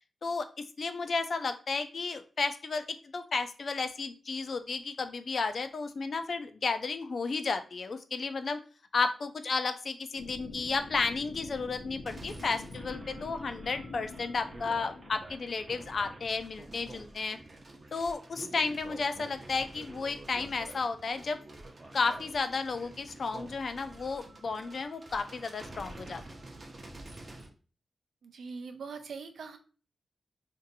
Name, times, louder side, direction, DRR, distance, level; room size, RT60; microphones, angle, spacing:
voice 1, 0.2-2.8 3.1-8.6 8.9-17.4 17.9-21.4 21.9-26.2, left 4 dB, 55° left, 9 dB, 0.4 m, -33 dB
sound 1, 10.2-16.1, left 3 dB, 85° left, 0.7 m, -46 dB
sound 2, 12.1-27.5, right 2 dB, 35° right, 0.6 m, -48 dB
voice 2, 28.2-29.6, right 5 dB, 85° right, 7 dB, 0.4 m, -42 dB
2.6 x 2.6 x 3.9 m, 0.37 s
wide cardioid pair, 140°, 0 cm